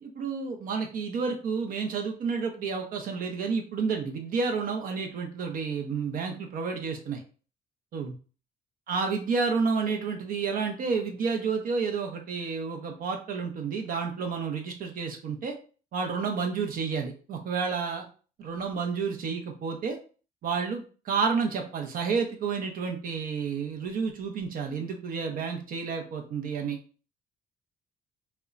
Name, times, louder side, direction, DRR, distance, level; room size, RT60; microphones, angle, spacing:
voice 1, 0.0-7.2 7.9-8.1 8.9-15.5 15.9-18.0 18.4-20.0 20.4-26.8, right 5 dB, 55° right, 3 dB, 0.6 m, -30 dB
2.8 x 2.1 x 2.4 m, 0.38 s
cardioid pair, 110°, 17 cm